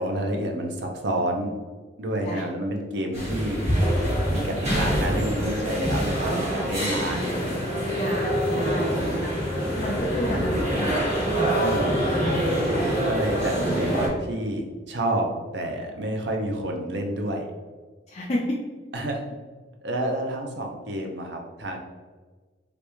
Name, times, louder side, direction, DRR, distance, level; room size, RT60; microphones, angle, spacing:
voice 1, 0.0-1.5 2.0-3.6 4.3-7.3 11.6-12.0 12.2-12.4 13.1-15.3 15.5-17.5 18.9-19.2 19.8-21.8, right 1 dB, 70° right, 3 dB, 0.6 m, -29 dB
sound 1, 3.1-14.1, equal, 40° right, 1.4 m, -25 dB
voice 2, 7.9-9.4 9.8-11.2 12.8-13.1 18.1-18.6, left 1 dB, 35° left, -4 dB, 0.4 m, -32 dB
3.3 x 2.6 x 3.0 m, 1.4 s
head